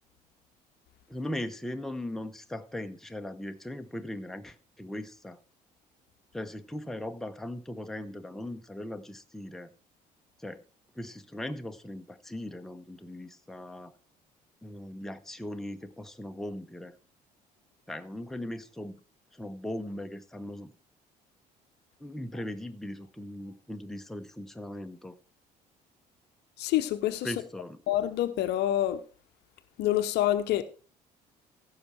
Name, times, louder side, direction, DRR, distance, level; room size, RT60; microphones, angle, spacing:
voice 1, 1.1-5.4 6.3-9.7 10.4-10.6 10.9-13.9 14.6-16.9 17.9-19.0 19.3-20.7 22.0-25.2 27.2-27.8, left 1 dB, ahead, 0.9 m, -39 dB
voice 2, 26.6-27.3 27.9-29.0 29.8-30.6, left 13 dB, 55° left, 0.8 m, -27 dB
15.5 x 5.8 x 4.3 m
figure-of-eight pair, 50°, 21 cm